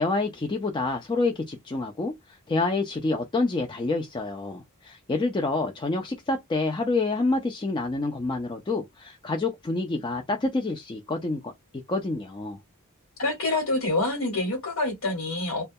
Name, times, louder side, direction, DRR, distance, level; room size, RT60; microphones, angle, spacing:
voice 1, 0.0-2.1 2.5-11.5 11.9-12.6, left 3 dB, 20° left, 0.3 m, -27 dB
voice 2, 13.2-15.6, left 2 dB, 65° left, 1.1 m, -26 dB
2.2 x 2.1 x 2.6 m
head